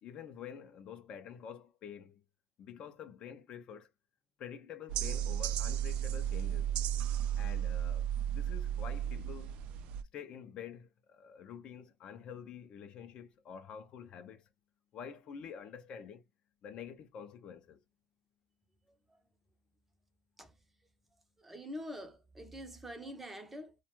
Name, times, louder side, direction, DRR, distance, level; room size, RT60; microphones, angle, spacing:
voice 1, 0.0-2.2 2.6-3.9 4.4-6.7 7.4-9.6 10.1-14.5 14.9-16.2 16.6-17.8, left 8 dB, 50° left, 0.5 m, -48 dB
sound 1, 4.9-10.0, right 10 dB, 65° right, 0.3 m, -34 dB
voice 2, 21.4-23.8, equal, 10° right, 0.6 m, -45 dB
2.3 x 2.2 x 2.9 m
cardioid pair, 130°, 2 cm